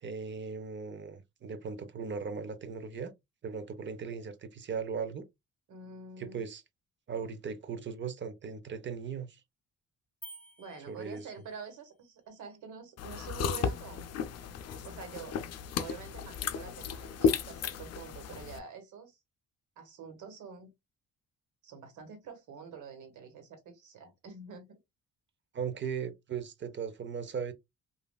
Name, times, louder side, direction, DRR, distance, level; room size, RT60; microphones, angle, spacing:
voice 1, 0.0-3.1 3.4-5.2 6.2-6.6 7.1-9.4 10.9-11.3 25.5-27.5, right 6 dB, 40° right, 0.7 m, -38 dB
voice 2, 5.7-6.4 10.6-14.1 14.8-15.4 15.7-19.2 19.8-20.7 21.6-24.7, right 6 dB, 80° right, 1.4 m, -47 dB
sound 1, 10.2-11.8, equal, 5° left, 0.4 m, -51 dB
sound 2, 13.0-18.6, left 6 dB, 55° left, 0.5 m, -34 dB
3.1 x 2.6 x 2.2 m
cardioid pair, 90°, 30 cm